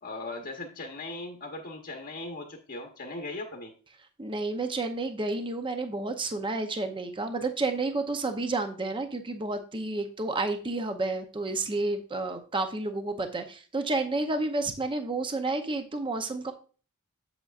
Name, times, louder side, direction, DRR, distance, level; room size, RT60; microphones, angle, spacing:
voice 1, 0.0-3.7, left 2 dB, 45° left, 1 dB, 1.0 m, -38 dB
voice 2, 4.2-16.5, right 2 dB, 20° right, 6 dB, 0.6 m, -30 dB
7.9 x 7.6 x 2.4 m, 0.38 s
head